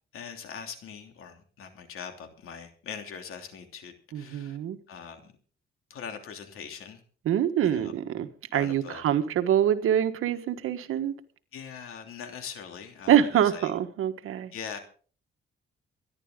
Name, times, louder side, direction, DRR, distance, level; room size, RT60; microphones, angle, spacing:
voice 1, 0.1-4.6 4.9-5.3 5.9-7.0 7.6-7.9 8.5-9.1 11.5-13.7 14.5-14.8, left 7 dB, 85° left, 3.0 m, -42 dB
voice 2, 4.1-4.8 7.2-11.1 13.1-14.5, right 10 dB, 85° right, 1.5 m, -25 dB
25.0 x 11.0 x 3.8 m
cardioid pair, 115°, 21 cm